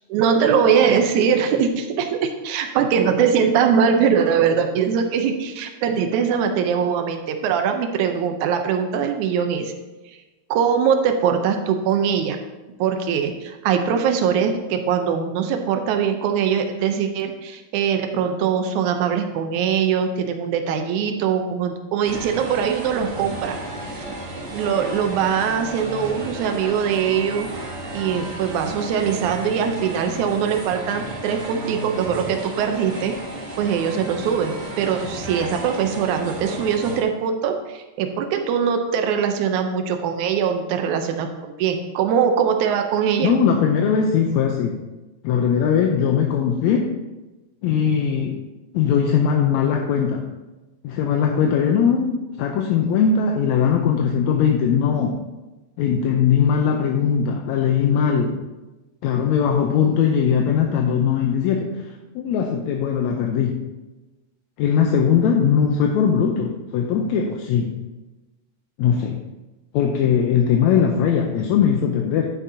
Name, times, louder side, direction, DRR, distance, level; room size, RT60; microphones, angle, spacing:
voice 1, 0.1-9.7 10.5-12.4 12.8-23.6 24.0-24.1 24.5-27.5 27.9-33.1 33.6-43.3, right 7 dB, 85° right, 5 dB, 2.2 m, -22 dB
sound 1, 22.0-37.0, right 1 dB, 55° right, 0.8 m, -33 dB
voice 2, 43.2-44.8 45.2-46.9 47.6-48.4 48.7-50.2 50.8-55.2 55.8-58.4 59.0-61.8 62.2-63.6 64.6-67.7 68.8-69.2 69.7-72.3, left 7 dB, 80° left, 2 dB, 1.9 m, -20 dB
11.0 x 9.7 x 2.8 m, 1.1 s
omnidirectional pair, 3.3 m